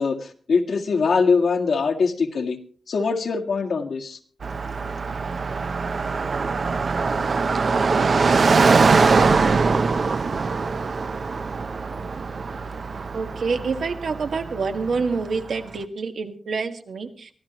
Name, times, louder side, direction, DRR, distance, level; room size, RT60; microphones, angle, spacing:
voice 1, 0.0-2.6 2.9-4.2, left 4 dB, 80° left, 1 dB, 1.9 m, -22 dB
Car passing by, 4.4-15.5, right 4 dB, 55° right, 0.7 m, -22 dB
voice 2, 13.1-17.3, right 4 dB, 75° right, 6 dB, 1.5 m, -27 dB
24.0 x 15.0 x 3.0 m, 0.43 s
wide cardioid pair, 130°, 0 cm